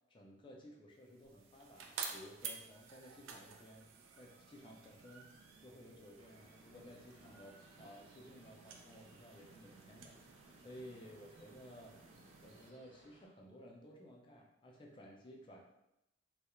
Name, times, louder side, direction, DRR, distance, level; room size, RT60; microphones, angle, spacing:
voice 1, 0.1-3.9 4.2-12.0 12.4-15.6, equal, 25° left, -1 dB, 0.4 m, -56 dB
sound 1, 1.0-12.7, right 5 dB, 80° right, 0.3 m, -52 dB
sound 2, 6.1-13.3, equal, 30° right, 0.7 m, -67 dB
2.3 x 2.0 x 2.9 m, 0.86 s
head